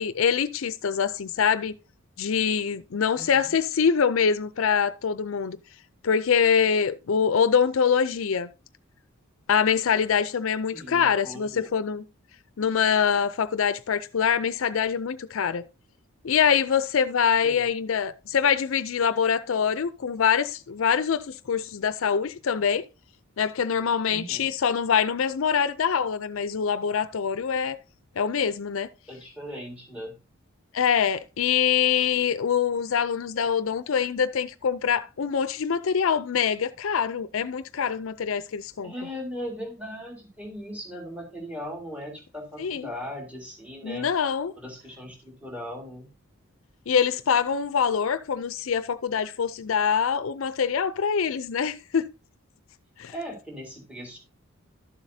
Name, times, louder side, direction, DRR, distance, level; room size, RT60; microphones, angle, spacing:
voice 1, 0.0-1.8 2.2-5.6 6.0-8.5 9.5-12.0 12.6-15.6 16.2-22.8 23.4-27.8 28.2-28.9 30.7-38.9 42.6-42.9 43.8-44.5 46.9-52.1 53.0-53.1, left 7 dB, 65° left, 0.5 m, -24 dB
voice 2, 3.1-3.5 10.7-11.7 17.4-17.7 24.1-24.5 29.1-30.2 38.8-44.1 44.6-46.1 53.1-54.2, equal, 5° right, 3.5 m, -38 dB
12.5 x 7.3 x 2.7 m
head